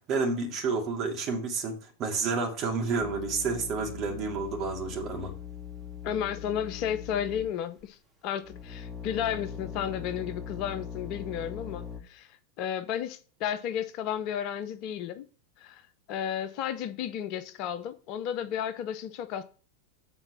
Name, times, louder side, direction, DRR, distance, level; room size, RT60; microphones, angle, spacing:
voice 1, 0.1-5.3, right 4 dB, 35° right, 2.7 m, -30 dB
sound 1, 3.0-7.8 8.4-12.0, left 7 dB, 5° right, 2.9 m, -41 dB
voice 2, 6.0-15.2 15.6-15.8 16.1-19.4, left 9 dB, 40° left, 0.7 m, -33 dB
8.1 x 4.4 x 7.1 m
figure-of-eight pair, 90°, 0 cm